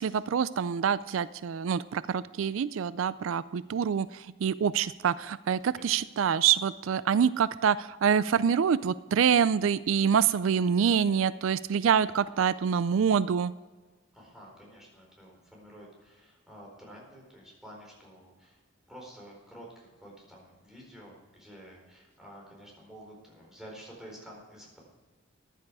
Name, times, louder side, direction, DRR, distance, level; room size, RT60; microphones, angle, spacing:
voice 1, 0.0-13.5, right 7 dB, 80° right, 17 dB, 0.4 m, -26 dB
voice 2, 14.1-18.6 18.9-24.8, equal, ahead, -3 dB, 4.4 m, -50 dB
14.5 x 10.5 x 4.8 m, 1.3 s
head